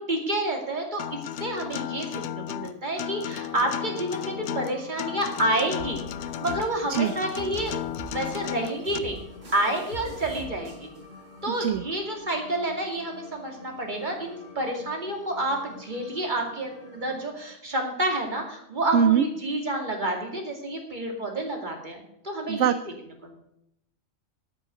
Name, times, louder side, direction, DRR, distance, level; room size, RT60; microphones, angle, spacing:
voice 1, 0.0-6.0 6.4-7.7 8.0-9.2 9.5-10.9 11.4-22.8 23.2-23.4, right 1 dB, 40° right, 2 dB, 2.6 m, -29 dB
Acoustic guitar, 1.0-9.0, left 11 dB, 70° left, 0.8 m, -34 dB
sound 1, 3.2-17.3, left 3 dB, 90° left, 3.4 m, -47 dB
sound 2, 5.8-11.8, right 2 dB, 55° right, 2.1 m, -44 dB
voice 2, 18.9-19.3 22.4-22.8, right 8 dB, 75° right, 12 dB, 0.9 m, -21 dB
8.9 x 8.8 x 8.0 m, 0.79 s
omnidirectional pair, 1.3 m